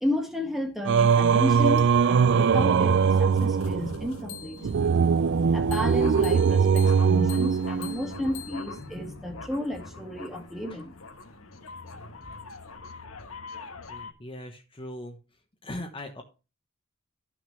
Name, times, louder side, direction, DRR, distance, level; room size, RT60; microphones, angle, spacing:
voice 1, 0.0-4.7 5.5-10.9, left 1 dB, ahead, 1.9 m, -32 dB
Singing, 0.9-8.2, right 6 dB, 60° right, 0.4 m, -21 dB
sound 1, 1.5-4.8 5.7-14.1, left 4 dB, 85° left, 1.4 m, -42 dB
voice 2, 13.9-15.2 15.6-16.2, left 1 dB, 25° left, 1.2 m, -39 dB
13.0 x 6.2 x 3.3 m
head